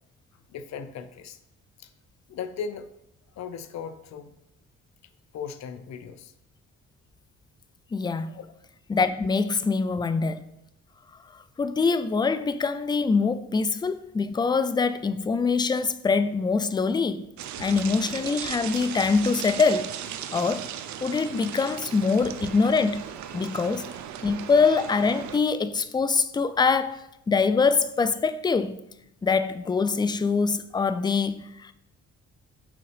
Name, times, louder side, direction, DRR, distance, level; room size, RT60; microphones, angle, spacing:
voice 1, 0.5-1.4 1.8-1.9 2.3-2.9 3.3-4.3 5.3-6.3 8.3-8.5 17.5-17.6 23.5-23.6, left 6 dB, 60° left, 0.6 m, -37 dB
voice 2, 7.9-8.3 8.9-10.5 11.6-17.3 17.6-20.0 20.3-20.6 21.0-23.0 23.3-24.0 24.2-28.9 29.2-31.7, left 4 dB, 15° left, 0.4 m, -24 dB
sound 1, 17.4-25.4, right 9 dB, 70° right, 0.6 m, -37 dB
6.0 x 3.9 x 4.9 m
cardioid pair, 90°, 30 cm